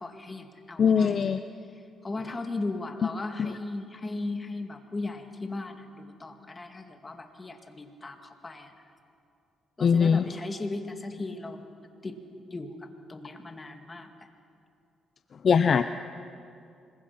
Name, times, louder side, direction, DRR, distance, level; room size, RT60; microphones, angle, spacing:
voice 1, 0.0-1.2 1.7-8.7 9.8-11.7 12.0-12.2 12.5-14.3, left 2 dB, 25° left, 5 dB, 2.1 m, -37 dB
voice 2, 0.8-1.4 3.4-3.5 9.8-10.3 15.4-15.9, left 6 dB, 50° left, 10 dB, 0.6 m, -21 dB
25.5 x 21.5 x 5.9 m, 2.5 s
cardioid pair, 90°, 0 cm